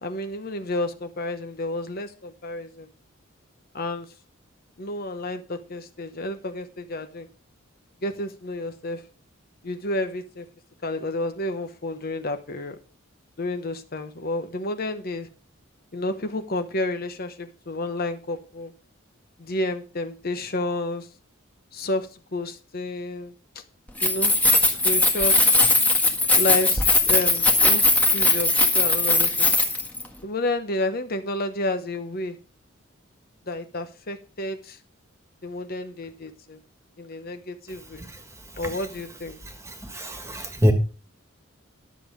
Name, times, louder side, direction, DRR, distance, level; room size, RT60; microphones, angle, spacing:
voice 1, 0.0-2.9 3.7-4.1 4.8-7.3 8.0-9.0 9.6-10.5 10.8-12.8 13.4-15.3 15.9-18.7 19.4-21.1 21.7-23.6 24.0-24.3 24.7-25.3 26.3-27.9 28.1-29.5 30.2-32.4 33.5-34.8 35.4-36.6 37.0-38.0 38.6-39.4, left 2 dB, 50° left, 8 dB, 1.0 m, -30 dB
Keys jangling, 23.9-30.0, left 2 dB, 5° left, 1.6 m, -19 dB
voice 2, 39.9-40.7, equal, 15° right, 6 dB, 1.7 m, -23 dB
11.5 x 7.2 x 5.1 m, 0.35 s
head